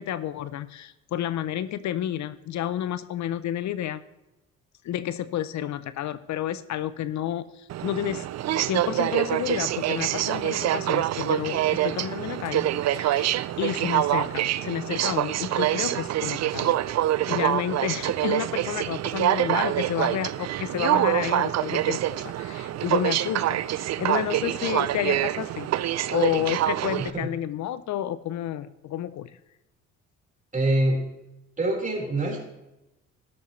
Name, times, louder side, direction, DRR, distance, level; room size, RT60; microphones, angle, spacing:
voice 1, 0.0-4.0 4.8-8.3 8.7-13.3 13.6-16.8 17.3-29.4, left 11 dB, 70° left, 15 dB, 0.6 m, -30 dB
Aircraft, 7.7-27.1, right 13 dB, 60° right, 0.5 m, -26 dB
voice 2, 30.5-31.0 31.6-32.6, right 1 dB, 25° right, -2 dB, 4.4 m, -25 dB
13.5 x 12.0 x 3.2 m, 0.96 s
cardioid pair, 90°, 30 cm